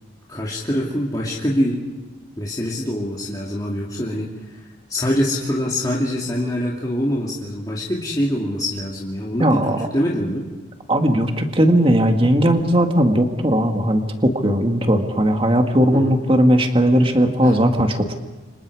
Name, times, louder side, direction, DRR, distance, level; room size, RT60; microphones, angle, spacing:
voice 1, 0.3-1.8 2.4-10.5 15.9-16.2 17.4-17.5, equal, 20° left, -4 dB, 2.6 m, -24 dB
voice 2, 9.4-9.9 10.9-18.1, equal, 30° right, 4 dB, 2.0 m, -17 dB
30.0 x 26.5 x 4.9 m, 1.2 s
head